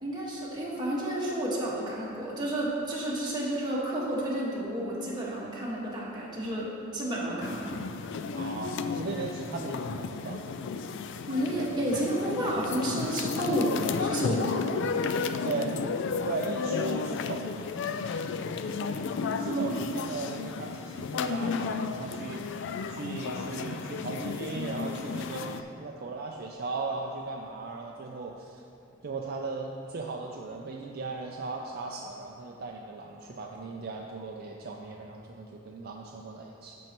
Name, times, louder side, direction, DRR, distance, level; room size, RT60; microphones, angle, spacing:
voice 1, 0.0-7.8 11.3-14.7 19.4-19.8, right 1 dB, 20° right, -6 dB, 1.6 m, -31 dB
sound 1, 7.4-25.6, left 5 dB, 60° left, 0.3 m, -33 dB
voice 2, 8.3-10.4 15.4-15.7 16.3-17.5 19.3-22.6 22.9-28.6 29.0-36.8, right 3 dB, 45° right, 0 dB, 0.4 m, -37 dB
13.5 x 5.4 x 3.0 m, 2.6 s
head